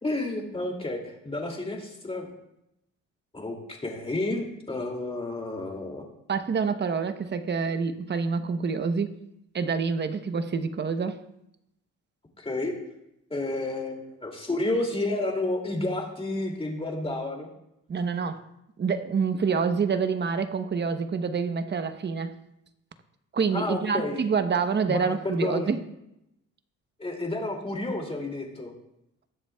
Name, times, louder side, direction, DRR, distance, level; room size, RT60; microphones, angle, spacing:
voice 1, 0.0-2.3 3.3-3.6 3.8-6.0 12.4-12.7 13.3-17.5 23.5-24.2 24.9-25.7 27.0-28.7, left 2 dB, 20° left, 1 dB, 2.5 m, -30 dB
voice 2, 6.3-9.1 9.5-11.2 17.9-18.4 18.8-22.3 23.3-25.8, right 5 dB, 35° right, 10 dB, 0.9 m, -27 dB
20.0 x 7.3 x 2.3 m, 0.84 s
cardioid pair, 90°, 30 cm